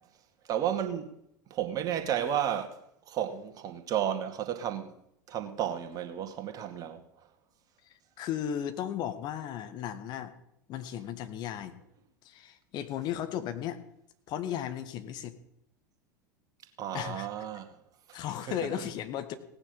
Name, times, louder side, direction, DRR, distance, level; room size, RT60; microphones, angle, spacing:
voice 1, 0.5-1.2 1.5-2.8 3.1-4.9 5.3-7.0 16.8-17.7 18.1-18.2 18.5-18.6, right 10 dB, 40° right, 2.3 m, -32 dB
voice 2, 7.9-10.3 10.7-11.8 12.2-13.8 14.3-15.4 16.9-17.3 18.1-19.4, left 10 dB, 45° left, 1.8 m, -35 dB
17.5 x 9.7 x 5.5 m
figure-of-eight pair, 80°, 10 cm